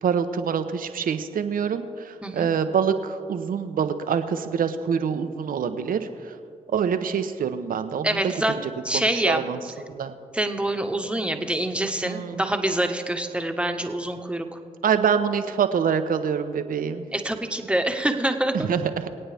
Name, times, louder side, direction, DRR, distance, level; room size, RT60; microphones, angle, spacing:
voice 1, 0.0-6.3 6.7-9.6 9.9-10.1 12.0-12.4 14.8-17.0 18.5-19.1, right 7 dB, 70° right, 9 dB, 0.8 m, -26 dB
voice 2, 8.0-8.6 8.8-9.4 10.3-14.6 17.1-18.7, right 1 dB, 5° right, 5 dB, 1.4 m, -25 dB
24.0 x 8.8 x 3.5 m, 2.3 s
supercardioid pair, 40°, 15 cm